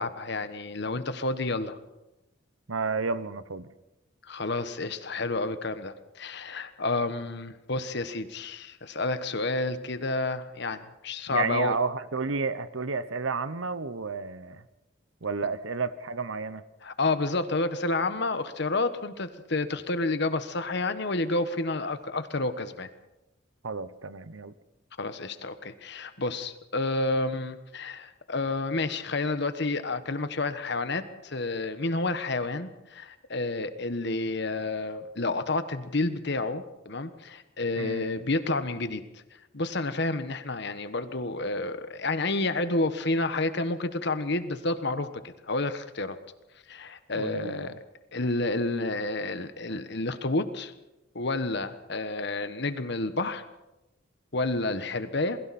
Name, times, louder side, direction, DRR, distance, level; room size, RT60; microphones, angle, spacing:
voice 1, 0.0-1.8 4.3-11.8 16.8-22.9 25.0-39.0 39.5-46.2 46.7-47.7 48.1-50.7 51.1-53.4 54.3-55.4, left 2 dB, 60° left, 11 dB, 1.3 m, -30 dB
voice 2, 2.7-3.7 11.3-14.6 15.2-16.6 23.6-24.5 37.8-38.1 47.1-47.7, right 4 dB, 90° right, 15 dB, 1.0 m, -31 dB
28.0 x 21.5 x 4.3 m, 0.99 s
head